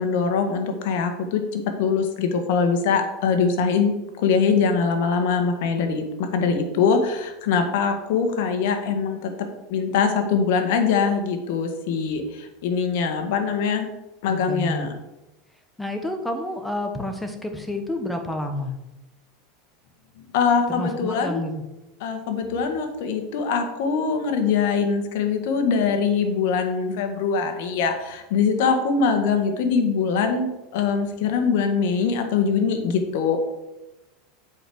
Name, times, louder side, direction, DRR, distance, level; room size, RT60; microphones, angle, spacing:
voice 1, 0.0-9.3 9.7-13.9 14.2-14.9 20.2-21.4 22.0-33.4, left 5 dB, 70° left, 5 dB, 1.7 m, -23 dB
voice 2, 14.3-14.9 15.8-18.7 20.7-21.6, left 1 dB, 5° left, 5 dB, 1.3 m, -29 dB
7.7 x 5.0 x 6.3 m, 0.97 s
supercardioid pair, 125°, 0 cm